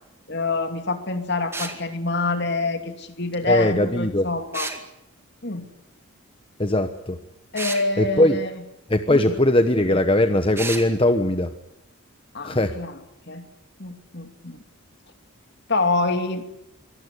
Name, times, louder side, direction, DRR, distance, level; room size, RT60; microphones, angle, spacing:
voice 1, 0.3-4.7 5.4-5.7 7.5-8.5 9.1-9.3 12.3-12.9 13.3-13.5 13.8-14.6 15.7-16.4, left 3 dB, 50° left, 7 dB, 2.6 m, -26 dB
sound 1, 1.5-1.8 4.5-4.8 7.5-7.8 10.5-10.9, right 3 dB, 10° right, 2.2 m, -30 dB
voice 2, 3.5-4.3 6.6-7.2 8.0-8.4 8.9-11.5 12.4-12.7, left 1 dB, 25° left, 8 dB, 1.1 m, -20 dB
24.5 x 18.0 x 9.9 m, 0.85 s
head